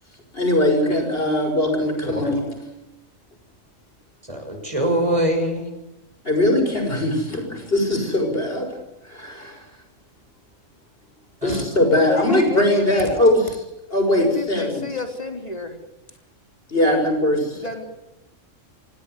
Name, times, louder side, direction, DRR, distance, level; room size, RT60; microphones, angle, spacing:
voice 1, 0.3-2.5 6.2-8.7 9.1-9.6 11.4-13.6 13.9-14.8 16.7-17.6, left 1 dB, 45° left, 4 dB, 6.9 m, -20 dB
voice 2, 2.0-2.3 4.2-5.7 11.4-12.0, right 1 dB, 25° right, 2 dB, 6.4 m, -24 dB
voice 3, 11.9-13.2 14.2-15.8 16.8-17.1 17.5-17.8, left 3 dB, 30° left, 4 dB, 3.5 m, -31 dB
27.0 x 17.0 x 9.7 m, 0.95 s
omnidirectional pair, 1.4 m